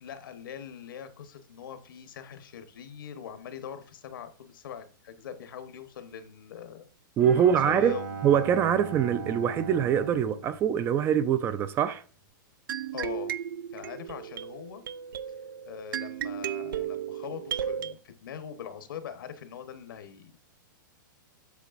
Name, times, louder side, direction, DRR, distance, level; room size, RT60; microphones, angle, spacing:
voice 1, 0.0-6.9 7.4-8.2 12.9-13.4 13.7-14.8 15.7-20.4, left 8 dB, 80° left, 1.1 m, -42 dB
voice 2, 7.2-12.0, right 9 dB, 20° right, 0.3 m, -24 dB
Bowed string instrument, 7.2-11.5, right 4 dB, 70° right, 3.9 m, -40 dB
sound 1, 12.7-17.9, right 9 dB, 90° right, 0.4 m, -35 dB
8.2 x 6.2 x 2.5 m
hypercardioid pair, 145°, 11 cm